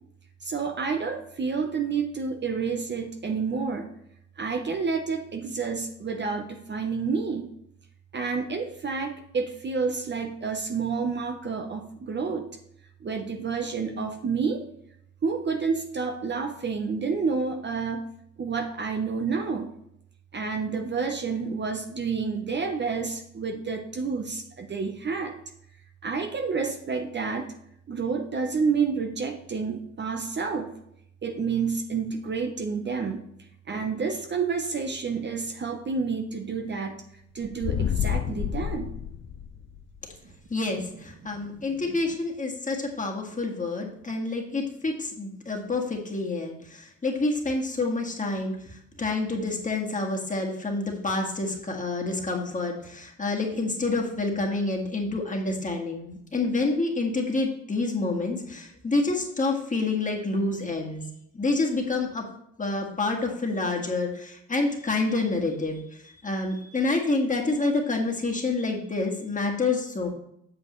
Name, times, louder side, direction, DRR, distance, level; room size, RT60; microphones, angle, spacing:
voice 1, 0.4-3.9 4.4-7.5 8.1-12.5 13.0-14.6 15.2-18.0 18.4-19.7 20.3-25.3 26.0-27.5 27.9-30.7 31.2-33.2 33.7-36.9 37.3-38.9 40.2-40.3 41.5-41.6 41.9-42.0, right 5 dB, 35° right, 5 dB, 0.8 m, -29 dB
sound 1, 37.4-39.9, left 10 dB, 45° left, 0.4 m, -29 dB
voice 2, 40.5-61.1 61.3-62.2 62.6-70.1, left 3 dB, 25° left, 0 dB, 1.8 m, -28 dB
8.1 x 6.8 x 3.1 m, 0.75 s
cardioid pair, 90°, 30 cm